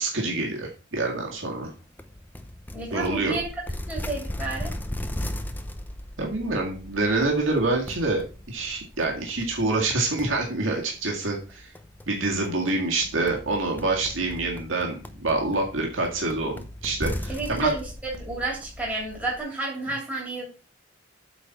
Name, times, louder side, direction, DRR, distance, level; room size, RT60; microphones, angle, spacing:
voice 1, 0.0-1.7 2.9-3.3 6.2-8.2 8.5-11.7 12.1-17.7, right 2 dB, 85° right, -1 dB, 1.9 m, -26 dB
sound 1, 2.0-19.4, left 1 dB, 10° left, 0.6 m, -38 dB
voice 2, 2.7-3.4 3.9-4.7 17.3-20.4, right 3 dB, 10° right, -4 dB, 2.9 m, -31 dB
8.3 x 4.2 x 5.7 m, 0.35 s
head